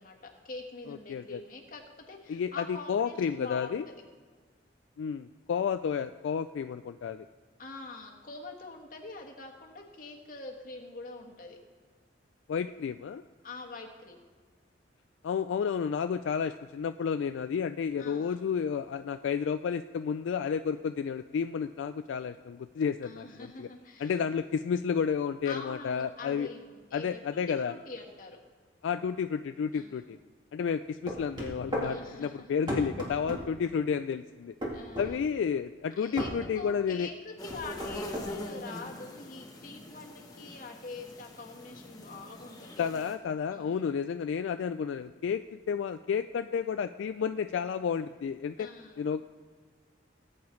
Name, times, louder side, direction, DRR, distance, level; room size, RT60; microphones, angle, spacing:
voice 1, 0.0-4.0 7.6-11.6 13.4-14.3 18.0-18.4 23.0-24.1 25.4-28.4 29.7-30.1 31.8-32.5 34.7-35.2 36.0-42.8 43.5-44.0 48.6-49.1, left 3 dB, 45° left, 1 dB, 1.4 m, -45 dB
voice 2, 0.9-1.4 2.3-3.9 5.0-7.3 12.5-13.2 15.2-23.7 24.0-26.5 26.9-27.7 28.8-30.2 30.5-34.5 35.0-37.1 42.8-48.7 49.0-49.2, left 6 dB, 75° left, 9 dB, 0.3 m, -31 dB
sound 1, 31.1-31.9 32.7-33.4 34.6-35.1 36.2-36.4 37.5-38.3, equal, 25° right, 2.0 m, -33 dB
sound 2, 37.4-43.1, left 1 dB, 20° left, 1.1 m, -43 dB
18.5 x 8.6 x 3.2 m, 1.5 s
head